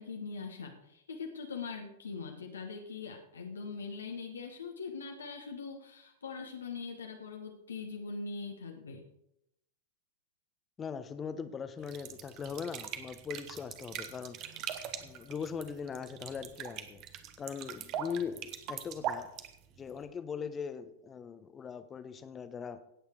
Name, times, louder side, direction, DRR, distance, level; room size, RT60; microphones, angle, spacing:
voice 1, 0.0-9.0, left 4 dB, 70° left, 3 dB, 1.4 m, -42 dB
voice 2, 10.8-14.6 15.0-17.0 17.4-19.3 19.8-22.8, left 6 dB, 20° left, 11 dB, 1.1 m, -40 dB
sound 1, 11.8-20.0, right 9 dB, 40° right, 1.3 m, -42 dB
17.0 x 8.7 x 4.7 m, 0.81 s
figure-of-eight pair, 90°, 0 cm